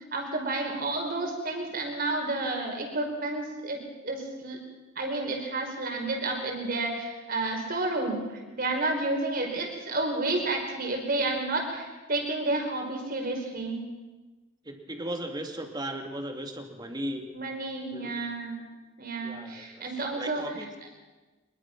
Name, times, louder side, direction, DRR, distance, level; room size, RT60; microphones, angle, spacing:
voice 1, 0.1-3.8 4.0-4.6 4.9-13.8 17.3-18.6 19.0-20.4, right 2 dB, 45° right, 2 dB, 5.1 m, -30 dB
voice 2, 14.6-17.3 17.9-18.2 19.2-20.7, right 1 dB, 20° right, 4 dB, 2.4 m, -37 dB
25.5 x 21.0 x 6.1 m, 1.2 s
head